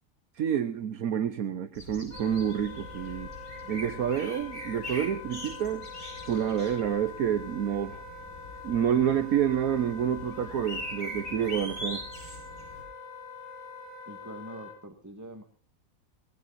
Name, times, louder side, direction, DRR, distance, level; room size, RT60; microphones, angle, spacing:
voice 1, 0.3-3.3 3.7-5.9 6.2-8.0 8.6-12.0, right 9 dB, 80° right, 9 dB, 1.4 m, -28 dB
sound 1, 1.8-12.8, left 1 dB, 90° left, 8.1 m, -42 dB
Wind instrument woodwind instrument, 2.1-14.8, left 4 dB, 40° left, 6.2 m, -44 dB
voice 2, 14.1-15.4, right 1 dB, 10° right, 4 dB, 1.9 m, -44 dB
24.5 x 20.0 x 2.7 m, 0.38 s
omnidirectional pair, 1.5 m